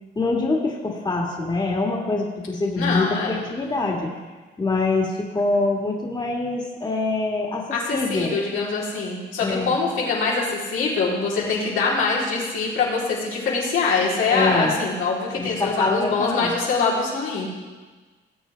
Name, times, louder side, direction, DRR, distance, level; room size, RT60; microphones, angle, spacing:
voice 1, 0.2-4.1 4.6-7.6 7.9-8.3 9.4-9.7 14.3-14.7 15.4-16.5, left 3 dB, 20° left, -1 dB, 2.0 m, -24 dB
voice 2, 2.8-3.4 7.7-17.5, left 4 dB, 85° left, -6 dB, 3.6 m, -24 dB
19.0 x 8.2 x 3.4 m, 1.3 s
cardioid pair, 90°, 20 cm